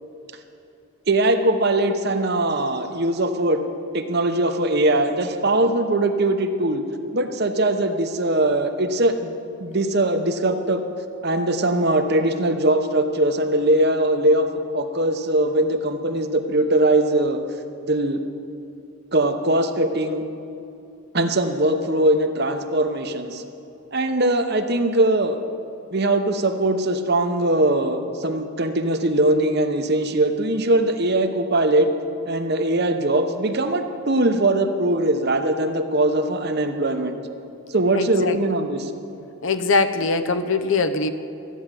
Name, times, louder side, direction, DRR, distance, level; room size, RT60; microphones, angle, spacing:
voice 1, 1.1-3.6 3.9-6.8 7.1-10.8 11.2-17.4 17.9-18.2 19.1-20.2 21.1-23.4 23.9-25.4 25.9-31.9 32.3-37.2 37.7-38.9, right 1 dB, 45° right, 7 dB, 0.9 m, -21 dB
voice 2, 37.9-38.4 39.4-41.1, left 3 dB, 60° left, 9 dB, 0.7 m, -22 dB
13.5 x 9.3 x 7.6 m, 2.7 s
head